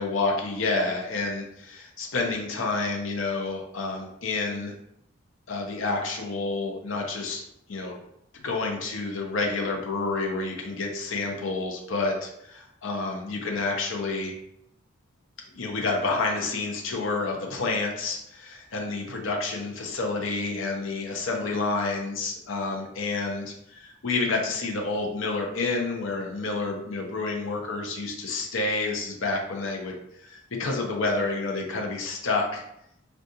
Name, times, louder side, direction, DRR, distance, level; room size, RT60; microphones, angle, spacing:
voice 1, 0.0-4.7 5.5-7.4 7.7-8.0 8.4-14.3 15.5-32.6, left 3 dB, 75° left, 1 dB, 0.6 m, -29 dB
3.6 x 2.3 x 2.7 m, 0.76 s
head